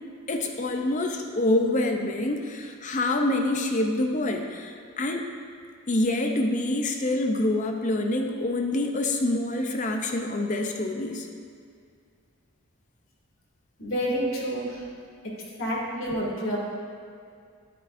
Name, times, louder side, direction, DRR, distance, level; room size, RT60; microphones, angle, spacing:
voice 1, 0.3-5.3 5.9-11.3, left 1 dB, 35° left, 4 dB, 0.6 m, -26 dB
voice 2, 13.8-14.8 15.6-16.6, equal, 65° left, -4 dB, 2.2 m, -28 dB
10.0 x 9.9 x 2.6 m, 2.3 s
head